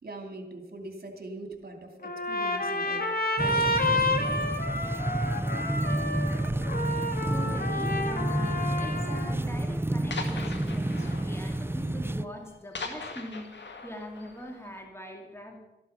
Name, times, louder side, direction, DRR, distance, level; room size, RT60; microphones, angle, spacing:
voice 1, 0.0-3.1 3.4-4.4, right 2 dB, 60° right, 4 dB, 2.5 m, -42 dB
Trumpet, 2.0-9.4, left 2 dB, 55° left, 1.9 m, -30 dB
sound 1, 2.5-2.7 3.4-3.9 4.1-4.6 4.9-5.2 5.7-5.8 6.0-6.1 6.9-7.3 8.2-8.3 8.6-8.7 9.1-9.2 9.5-9.6 10.1-14.8, left 3 dB, 80° left, 1.9 m, -41 dB
sound 2, 3.4-12.3, right 1 dB, 10° right, 0.5 m, -30 dB
voice 2, 7.3-15.5, equal, 15° left, 2 dB, 2.6 m, -42 dB
13.0 x 12.0 x 5.8 m, 1.0 s
cardioid pair, 55°, 18 cm